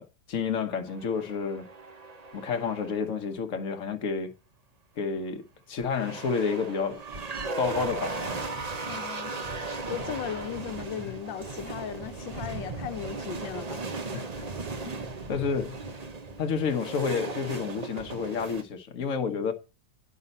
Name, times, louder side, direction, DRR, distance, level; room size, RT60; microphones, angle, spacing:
voice 1, 0.0-1.7 2.3-4.3 5.0-7.0 7.6-8.4 14.1-14.5 14.8-15.0 15.3-15.8 16.4-19.5, left 6 dB, 50° left, 1.3 m, -30 dB
sound 1, 0.9-3.2 5.8-18.6, right 3 dB, 40° right, 0.5 m, -37 dB
voice 2, 8.9-9.4 9.9-13.9, left 9 dB, 80° left, 1.5 m, -37 dB
10.0 x 5.6 x 5.4 m
omnidirectional pair, 2.0 m